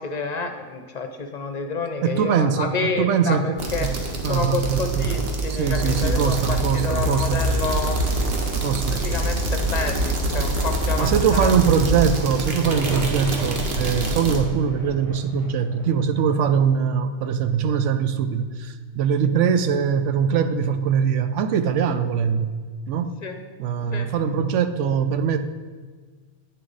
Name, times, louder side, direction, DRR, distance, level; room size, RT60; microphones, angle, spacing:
voice 1, 0.0-3.9 4.3-8.0 8.9-11.5 23.2-23.4 23.9-24.1, left 4 dB, 45° left, 5 dB, 0.7 m, -29 dB
voice 2, 2.0-3.6 3.9-4.0 4.2-5.0 5.5-7.5 8.6-9.1 11.0-22.5 22.9-23.1 23.6-25.4, right 7 dB, 90° right, 10 dB, 0.9 m, -22 dB
sound 1, 3.6-14.4, right 2 dB, 60° right, 1.3 m, -25 dB
sound 2, 9.7-17.5, right 1 dB, 35° right, 2.4 m, -37 dB
8.6 x 6.7 x 4.0 m, 1.5 s
omnidirectional pair, 1.2 m